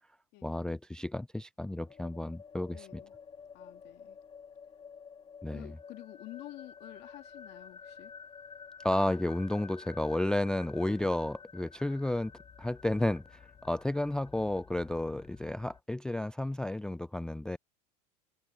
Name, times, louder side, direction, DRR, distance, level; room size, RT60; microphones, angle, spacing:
voice 1, 0.4-3.0 5.4-5.7 8.8-12.3 12.6-17.6, left 1 dB, 5° left, 0.3 m, -32 dB
sound 1, 1.8-15.8, left 6 dB, 25° left, 0.9 m, -51 dB
voice 2, 2.7-3.1 3.5-4.2 5.5-8.1, left 19 dB, 60° left, 2.2 m, -49 dB
open air
hypercardioid pair, 95°, 20 cm